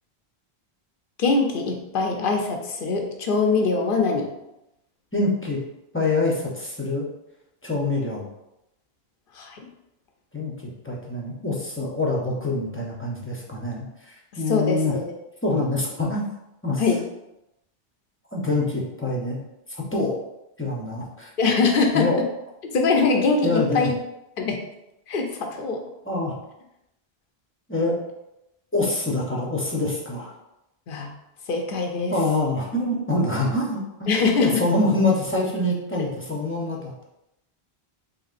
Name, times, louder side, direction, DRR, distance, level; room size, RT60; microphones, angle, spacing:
voice 1, 1.2-4.3 9.4-9.6 14.5-15.0 16.8-17.0 21.4-22.1 22.6-23.9 24.4-24.6 25.1-25.8 30.9-31.1 31.5-32.1 34.1-34.6, left 4 dB, 60° left, 3 dB, 0.7 m, -22 dB
voice 2, 5.1-5.6 5.9-7.1 7.6-8.3 10.3-14.9 15.4-16.3 16.6-16.8 18.3-19.4 19.9-20.2 20.6-21.3 21.9-22.2 23.4-23.9 26.0-26.3 27.7-28.0 28.7-30.3 32.1-34.1 34.4-37.0, left 2 dB, 15° left, -3 dB, 0.5 m, -25 dB
4.0 x 3.6 x 2.4 m, 0.88 s
omnidirectional pair, 1.1 m